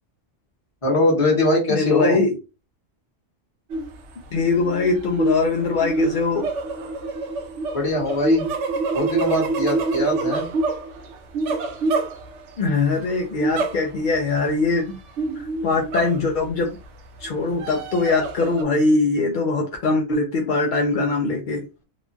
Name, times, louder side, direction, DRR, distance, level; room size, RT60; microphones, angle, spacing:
voice 1, 0.8-2.2 7.7-8.4 8.9-10.4, left 1 dB, 30° left, -2 dB, 1.0 m, -21 dB
voice 2, 1.7-2.4 4.3-6.5 12.6-15.0 15.4-16.8 17.2-21.6, left 3 dB, 60° left, 1 dB, 0.5 m, -22 dB
sound 1, 3.7-4.0 4.4-12.6 13.4-14.1 14.4-14.5 15.2-16.6 17.2-18.6, right 3 dB, 75° right, 0.9 m, -26 dB
3.0 x 2.2 x 2.4 m, 0.29 s
omnidirectional pair, 1.3 m